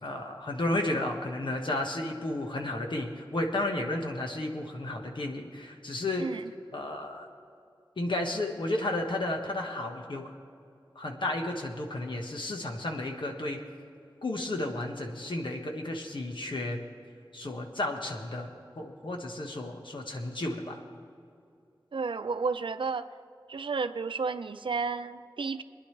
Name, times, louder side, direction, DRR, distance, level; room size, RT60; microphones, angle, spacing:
voice 1, 0.0-6.3 6.7-7.3 8.0-10.3 10.9-13.6 14.2-16.8 17.3-20.8, left 2 dB, 70° left, 2 dB, 1.5 m, -33 dB
voice 2, 6.2-6.5 21.9-23.1 23.5-25.6, right 4 dB, 80° right, 11 dB, 0.5 m, -32 dB
22.5 x 10.5 x 3.4 m, 2.5 s
wide cardioid pair, 70°, 8 cm